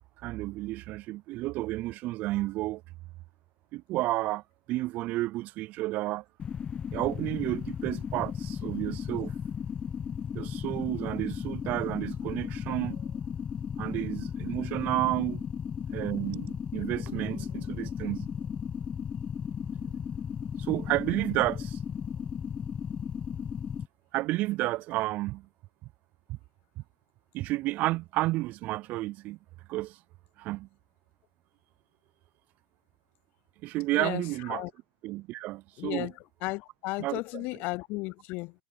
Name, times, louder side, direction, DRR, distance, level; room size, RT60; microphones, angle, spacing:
voice 1, 0.2-2.8 3.7-6.2 6.9-9.3 10.3-13.1 13.8-15.5 15.9-18.3 20.6-21.8 24.1-25.5 26.3-26.4 26.8-26.9 27.3-29.4 29.7-30.0 30.4-30.7 33.6-34.7 35.0-36.1 37.0-37.5, right 18 dB, 50° right, 0.4 m, -31 dB
sound 1, 6.4-23.9, left 7 dB, 30° left, 0.9 m, -35 dB
voice 2, 33.9-34.2 34.5-34.7 35.8-36.1 36.4-38.5, left 23 dB, 55° left, 0.4 m, -34 dB
hypercardioid pair, 90°, 3 cm